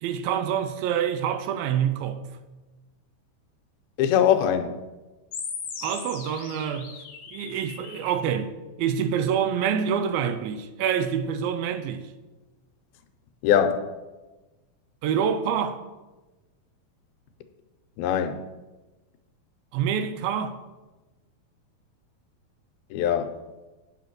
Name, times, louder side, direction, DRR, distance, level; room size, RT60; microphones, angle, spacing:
voice 1, 0.0-2.2 5.8-6.9 7.3-12.1 15.0-15.8 19.7-20.5, right 8 dB, 80° right, 2.5 m, -26 dB
voice 2, 4.0-4.8 13.4-13.9 18.0-18.4 22.9-23.4, left 9 dB, 85° left, 2.6 m, -22 dB
sound 1, 5.3-8.3, left 6 dB, 55° left, 2.0 m, -38 dB
8.4 x 8.3 x 6.0 m
omnidirectional pair, 4.2 m